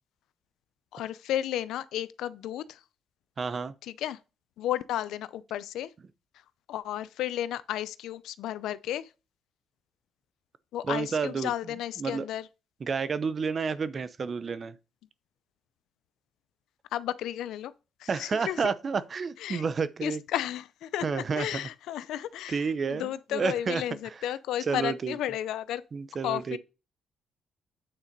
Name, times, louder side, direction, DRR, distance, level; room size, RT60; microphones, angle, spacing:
voice 1, 0.9-2.8 3.8-4.2 4.6-5.9 6.7-9.1 10.7-12.5 16.9-17.7 18.0-18.7 19.4-19.7 20.0-25.8 26.2-26.6, left 12 dB, 85° left, 0.5 m, -33 dB
voice 2, 3.4-3.7 10.9-11.5 12.0-12.2 12.8-14.7 18.1-20.2 21.0-21.5 22.5-23.8 24.7-25.2 25.9-26.6, right 5 dB, 40° right, 0.8 m, -30 dB
8.8 x 4.1 x 5.2 m
cardioid pair, 90°, 0 cm